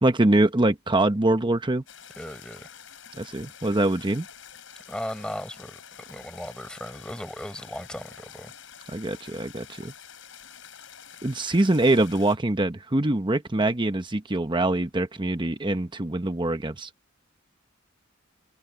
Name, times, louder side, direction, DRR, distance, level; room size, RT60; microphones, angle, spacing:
voice 1, 0.0-1.8 3.2-4.2 8.9-9.9 11.2-16.9, right 2 dB, 25° right, 1.0 m, -24 dB
sound 1, 1.9-12.4, left 8 dB, 65° left, 7.2 m, -47 dB
voice 2, 2.2-2.7 4.9-8.5, equal, 5° left, 4.3 m, -37 dB
head